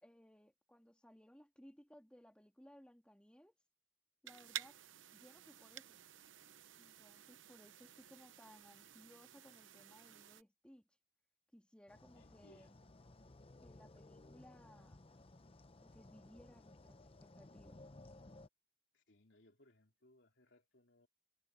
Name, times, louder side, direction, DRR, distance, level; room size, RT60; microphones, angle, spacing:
voice 1, 0.0-3.5 4.2-4.8 5.1-6.0 6.8-10.8 11.5-12.7 13.6-15.0 15.8-17.8, equal, 5° left, 2.2 m, -62 dB
sound 1, 4.3-10.4, right 11 dB, 80° right, 0.8 m, -52 dB
sound 2, 11.9-18.5, left 2 dB, 30° left, 0.8 m, -59 dB
voice 2, 12.1-12.9 18.9-21.1, left 1 dB, 65° left, 3.4 m, -68 dB
head